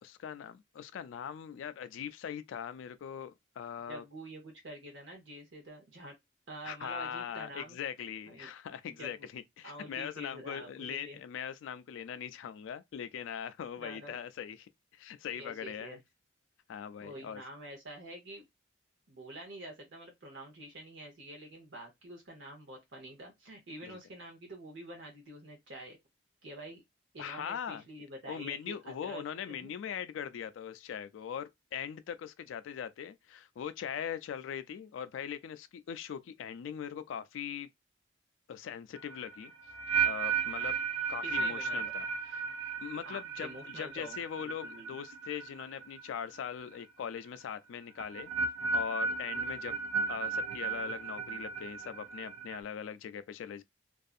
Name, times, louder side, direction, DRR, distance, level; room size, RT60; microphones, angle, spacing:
voice 1, 0.0-4.0 6.6-16.0 16.7-17.4 23.8-24.0 27.2-27.8 28.3-37.7 38.5-39.5 39.9-40.8 41.1-42.5 42.8-48.3 48.7-49.7 50.1-53.6, left 8 dB, 85° left, 0.3 m, -41 dB
voice 2, 3.9-6.1 6.5-7.8 8.3-8.5 9.0-9.3 9.6-11.2 13.8-14.2 15.3-16.0 17.0-18.4 19.1-26.0 26.4-26.8 27.1-29.7 41.2-41.9 43.0-45.0, right 1 dB, 75° right, 0.9 m, -47 dB
sound 1, 39.0-46.1 46.3-46.8 48.0-52.6, right 5 dB, 90° right, 0.4 m, -35 dB
2.6 x 2.3 x 2.4 m
head